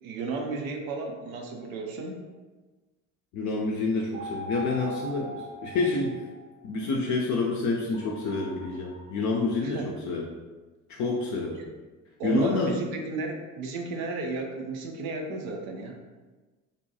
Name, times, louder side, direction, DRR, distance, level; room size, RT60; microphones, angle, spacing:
voice 1, 0.0-2.2 9.6-9.9 11.6-11.7 12.2-16.0, right 3 dB, 75° right, 2 dB, 0.6 m, -33 dB
voice 2, 3.3-6.2 6.6-10.3 10.9-11.6 12.2-12.8, left 3 dB, 45° left, -2 dB, 0.4 m, -28 dB
sound 1, 4.1-6.7 7.9-9.3, equal, 15° right, 0.4 m, -40 dB
2.7 x 2.2 x 2.7 m, 1.3 s
figure-of-eight pair, 50°, 42 cm